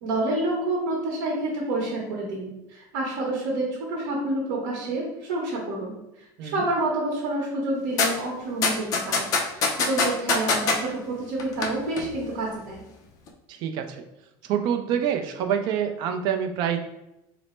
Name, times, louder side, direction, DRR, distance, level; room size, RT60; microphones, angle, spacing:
voice 1, 0.0-9.3 9.5-12.8, right 2 dB, 85° right, -3 dB, 0.8 m, -28 dB
sound 1, 8.0-8.1 8.6-10.8 11.4-11.7 12.0-12.1, left 4 dB, 35° left, 0.4 m, -22 dB
voice 2, 13.5-14.0 14.5-16.8, right 8 dB, 45° right, 6 dB, 0.4 m, -26 dB
3.2 x 2.0 x 4.1 m, 0.89 s
cardioid pair, 175°, 10 cm